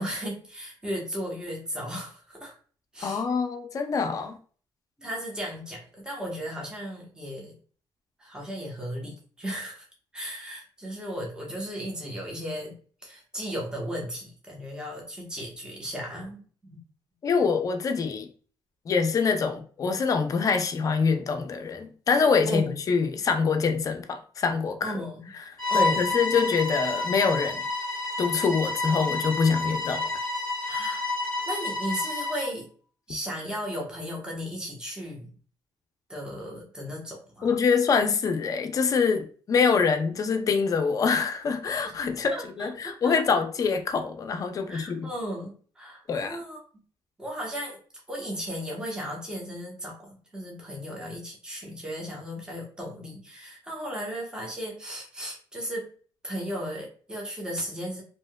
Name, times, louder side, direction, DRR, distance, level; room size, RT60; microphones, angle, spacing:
voice 1, 0.0-2.5 2.9-3.2 5.0-7.5 8.2-9.9 10.1-12.7 13.0-16.8 22.5-22.8 24.8-25.2 25.7-26.2 30.7-31.1 31.5-32.7 33.1-35.3 36.1-37.5 42.3-43.4 44.7-46.6 47.2-47.8 48.1-55.9 56.2-58.0, equal, 10° right, 1.0 m, -35 dB
voice 2, 3.0-4.4 17.2-18.3 18.9-25.0 25.7-27.6 28.2-30.1 37.4-45.1 46.1-46.4, left 5 dB, 40° left, 0.5 m, -25 dB
Bowed string instrument, 25.6-32.5, left 3 dB, 10° left, 1.3 m, -29 dB
3.3 x 2.8 x 2.2 m
cardioid pair, 115°, 9 cm